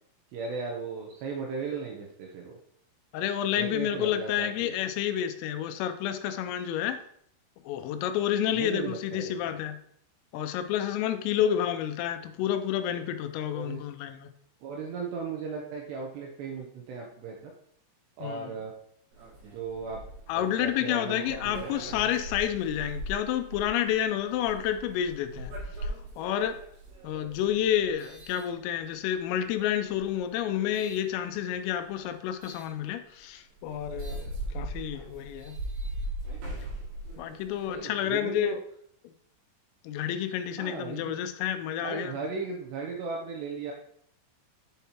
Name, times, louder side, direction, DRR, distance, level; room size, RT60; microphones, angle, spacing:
voice 1, 0.3-2.6 3.5-4.8 8.5-9.6 13.5-13.9 14.6-17.5 18.2-18.7 19.4-20.0 20.3-21.7 37.7-38.6 40.6-41.2 41.8-43.7, right 4 dB, 80° right, 2.5 m, -36 dB
voice 2, 3.1-7.0 7.7-9.8 10.3-14.3 18.2-18.5 20.3-25.5 25.8-25.9 26.2-26.6 27.0-35.6 37.2-38.6 39.8-42.1, left 10 dB, 85° left, 3.2 m, -29 dB
sound 1, 19.1-29.1 29.8-31.0 32.4-32.7 33.2-33.3 33.6-37.8, right 1 dB, 60° right, 3.9 m, -40 dB
8.3 x 6.9 x 2.9 m
omnidirectional pair, 5.9 m